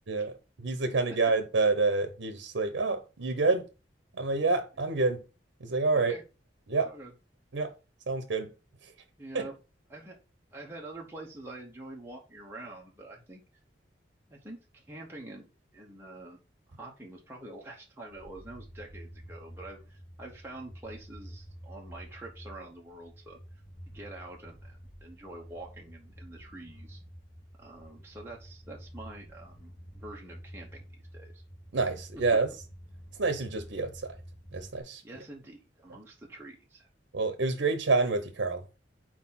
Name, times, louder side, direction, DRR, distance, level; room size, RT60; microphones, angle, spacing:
voice 1, 0.6-3.6 4.1-5.2 5.6-6.1 6.7-6.9 7.5-7.7 8.1-8.5 9.3-9.4 31.7-32.5 33.2-34.2 34.5-35.0 37.1-38.6, right 3 dB, 85° right, 0.7 m, -28 dB
voice 2, 9.2-9.6 9.9-10.2 10.5-13.4 14.3-15.5 15.7-16.4 16.8-23.4 23.9-27.0 27.6-30.9 31.1-31.4 35.0-36.9, right 2 dB, 15° right, 0.9 m, -46 dB
sound 1, 18.1-34.8, equal, 55° left, 2.3 m, -49 dB
4.4 x 4.0 x 5.7 m
head